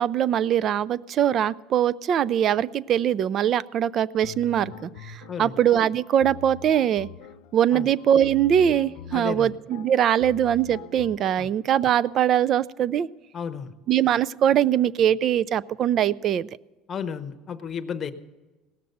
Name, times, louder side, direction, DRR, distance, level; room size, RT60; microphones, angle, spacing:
voice 1, 0.0-7.1 7.5-13.1 13.9-16.5, right 10 dB, 40° right, 21 dB, 0.3 m, -22 dB
sound 1, 4.2-12.1, left 7 dB, 80° left, 0.7 m, -43 dB
voice 2, 9.1-9.6 11.4-11.5 13.3-13.7 16.9-18.1, left 7 dB, 30° left, 10 dB, 0.8 m, -33 dB
17.5 x 6.6 x 7.8 m, 1.2 s
cardioid pair, 135°, 0 cm